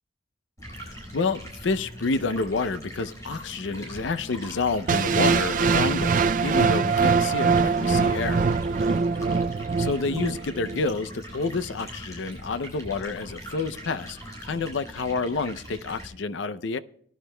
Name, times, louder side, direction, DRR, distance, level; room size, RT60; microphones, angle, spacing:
Stream, 0.6-16.1, equal, 15° left, 5.1 m, -41 dB
voice 1, 1.1-8.5 9.8-16.8, left 4 dB, 85° left, 13 dB, 0.5 m, -29 dB
sound 1, 4.9-10.9, right 5 dB, 45° right, 0.4 m, -23 dB
20.0 x 11.5 x 2.2 m, 0.66 s
head